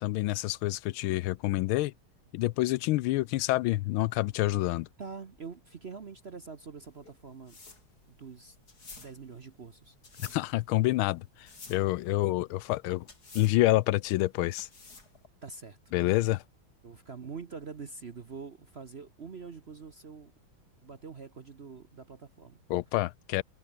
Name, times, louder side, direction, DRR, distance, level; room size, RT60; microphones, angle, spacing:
voice 1, 0.0-1.9 2.3-4.9 10.2-13.1 13.3-14.7 15.9-16.4 22.7-23.4, left 17 dB, 80° left, 1.4 m, -28 dB
voice 2, 4.6-7.6 8.1-8.6 9.0-10.0 15.4-15.8 16.8-20.3 20.8-22.6, right 5 dB, 40° right, 0.9 m, -45 dB
sound 1, 6.9-15.3, left 3 dB, 45° left, 4.5 m, -52 dB
omnidirectional pair, 2.3 m